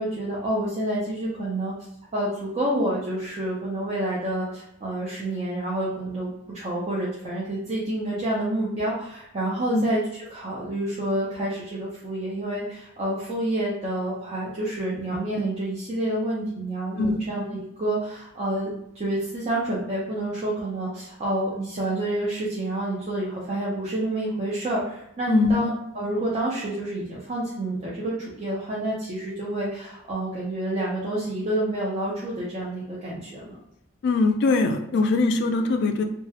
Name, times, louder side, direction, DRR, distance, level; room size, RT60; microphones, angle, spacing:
voice 1, 0.0-1.7 2.1-33.6, right 1 dB, 35° right, -6 dB, 0.5 m, -28 dB
voice 2, 25.3-25.8 34.0-36.0, left 3 dB, 60° left, 6 dB, 0.3 m, -22 dB
2.2 x 2.0 x 2.7 m, 0.80 s
head